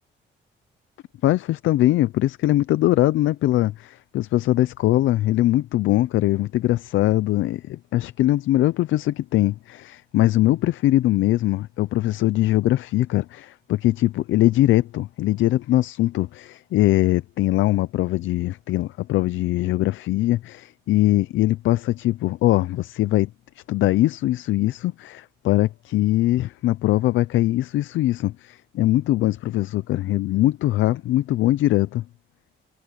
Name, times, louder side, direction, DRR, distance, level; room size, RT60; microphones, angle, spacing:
voice 1, 1.2-23.3 23.6-32.0, left 15 dB, 75° left, 0.6 m, -21 dB
cardioid pair, 90°, 20 cm